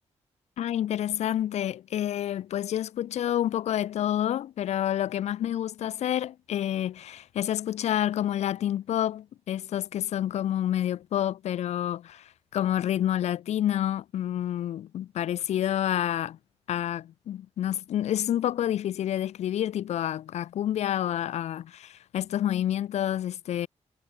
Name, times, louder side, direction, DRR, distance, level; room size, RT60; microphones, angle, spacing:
voice 1, 0.6-16.4 16.7-23.7, left 11 dB, 70° left, 0.4 m, -28 dB
wide cardioid pair, 135°, 12 cm